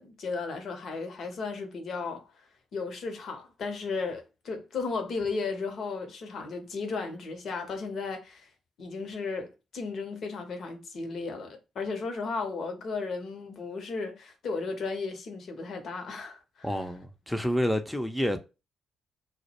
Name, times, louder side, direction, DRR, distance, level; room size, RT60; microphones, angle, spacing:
voice 1, 0.0-2.3 2.7-8.5 8.8-16.8, left 4 dB, 55° left, 0.7 m, -35 dB
voice 2, 16.6-18.4, equal, 5° left, 0.5 m, -28 dB
2.1 x 2.0 x 2.8 m
figure-of-eight pair, 40°, 0 cm